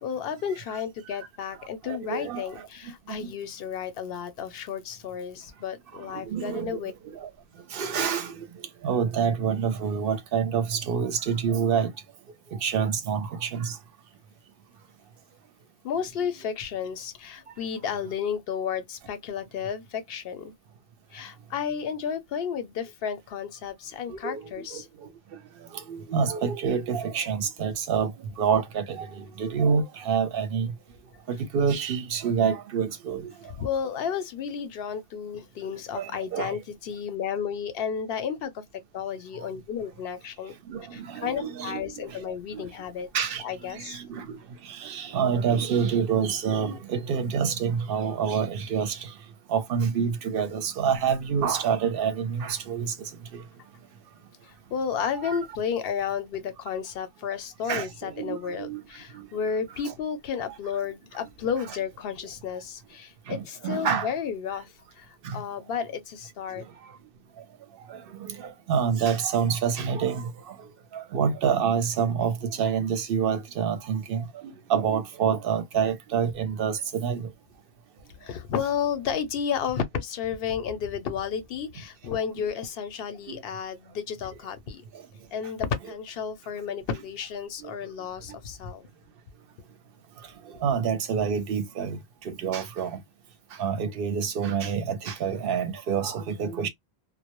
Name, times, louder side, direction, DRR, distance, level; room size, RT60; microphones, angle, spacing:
voice 1, 0.0-6.9 15.8-20.5 21.1-24.9 33.6-38.6 38.9-40.5 40.9-43.1 43.4-44.0 54.4-66.7 78.2-84.8 85.3-88.9, left 7 dB, 70° left, 0.8 m, -32 dB
voice 2, 1.9-2.4 3.2-3.3 5.9-6.8 7.2-7.3 7.7-8.4 8.8-11.9 12.5-13.7 16.2-16.3 24.1-24.8 25.7-28.1 28.4-30.7 31.3-33.3 36.0-36.6 40.7-41.8 42.1-42.2 42.5-42.6 43.1-43.4 43.7-44.4 44.7-49.0 49.5-53.4 55.2-55.4 57.7-58.8 59.1-59.2 59.9-60.0 63.3-64.1 65.2-65.4 67.9-70.3 70.9-77.3 83.3-83.4 87.6-87.7 90.6-92.0 92.3-92.9 93.6-96.7, right 7 dB, 70° right, 0.7 m, -27 dB
2.1 x 2.0 x 2.9 m
omnidirectional pair, 1.0 m